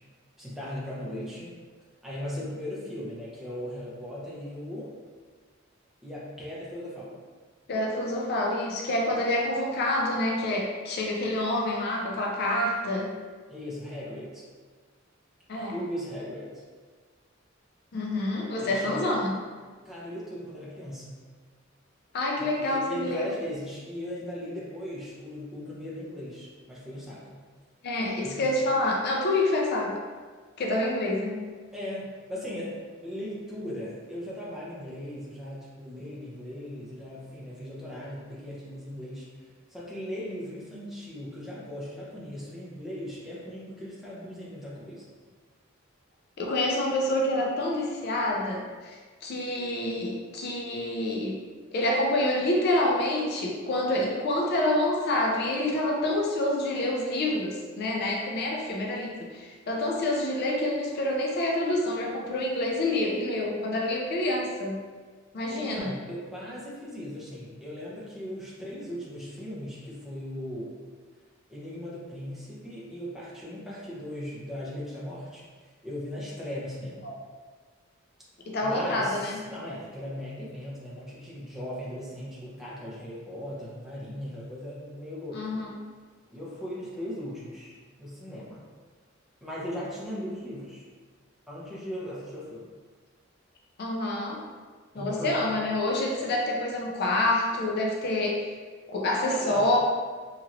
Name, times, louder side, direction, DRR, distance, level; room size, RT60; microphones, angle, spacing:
voice 1, 0.4-1.5 2.0-4.9 6.0-7.2 13.5-14.4 15.5-16.6 18.6-19.1 19.8-21.2 22.4-27.4 28.2-28.5 31.7-32.7 33.0-39.3 39.7-45.1 65.5-70.7 71.5-77.1 78.6-85.6 86.3-87.7 88.0-88.6 89.4-90.8 91.5-92.7 94.9-95.6 99.2-99.6, left 1 dB, ahead, -8 dB, 0.7 m, -38 dB
voice 2, 7.7-13.1 15.5-15.8 17.9-19.4 22.1-23.3 27.8-29.9 30.6-31.4 46.4-51.4 51.7-64.8 65.3-65.9 77.0-77.1 78.5-79.4 85.3-85.7 93.8-94.4 94.9-98.5 98.9-99.8, left 1 dB, 55° left, -1 dB, 0.4 m, -27 dB
2.9 x 2.8 x 2.5 m, 1.5 s
head